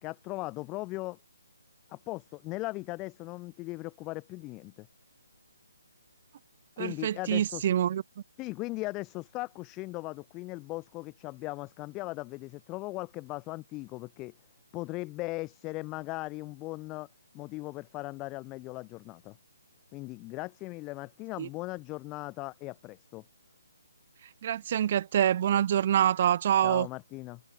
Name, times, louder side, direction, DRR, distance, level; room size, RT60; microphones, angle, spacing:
voice 1, 0.0-1.2 1.9-4.9 6.8-7.7 8.4-14.3 14.7-17.1 17.3-19.4 19.9-23.2 26.6-27.4, left 21 dB, 20° left, 0.4 m, -38 dB
voice 2, 6.8-8.0 21.4-21.5 24.4-26.9, right 10 dB, 40° right, 0.4 m, -26 dB
figure-of-eight pair, 150°, 0 cm